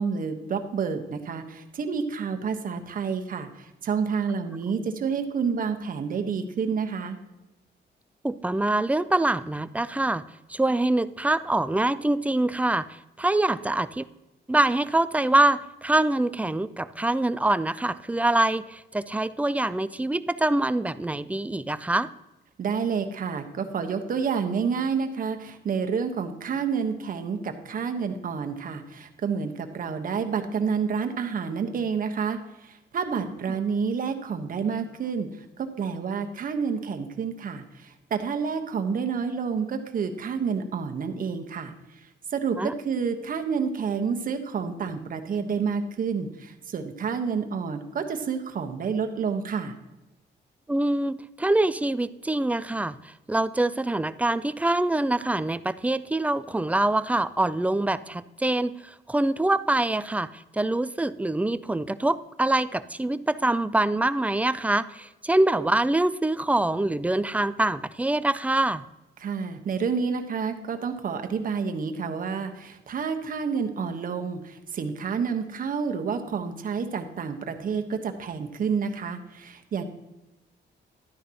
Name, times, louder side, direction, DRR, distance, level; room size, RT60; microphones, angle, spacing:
voice 1, 0.0-7.2 22.6-35.3 35.6-41.7 42.3-49.7 69.2-79.8, right 6 dB, 50° right, 6 dB, 1.1 m, -29 dB
voice 2, 8.2-10.2 10.5-14.0 14.5-22.1 42.6-42.7 50.7-68.8, right 2 dB, 10° right, 14 dB, 0.3 m, -25 dB
12.0 x 10.0 x 2.9 m, 1.0 s
cardioid pair, 135°, 19 cm